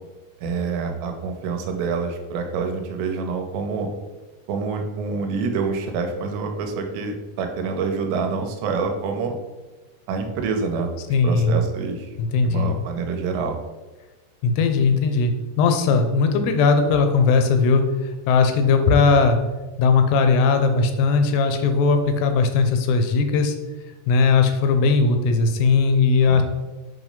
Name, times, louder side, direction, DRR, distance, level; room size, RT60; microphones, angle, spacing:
voice 1, 0.4-3.9 4.5-9.3 10.1-10.9 11.2-12.1 12.4-13.6 26.2-26.4, right 5 dB, 90° right, 4 dB, 3.0 m, -26 dB
voice 2, 11.1-11.6 12.2-12.7 14.4-19.4 19.8-23.5 24.1-26.4, left 4 dB, 80° left, 6 dB, 2.7 m, -18 dB
7.9 x 3.1 x 5.2 m, 1.2 s
omnidirectional pair, 5.0 m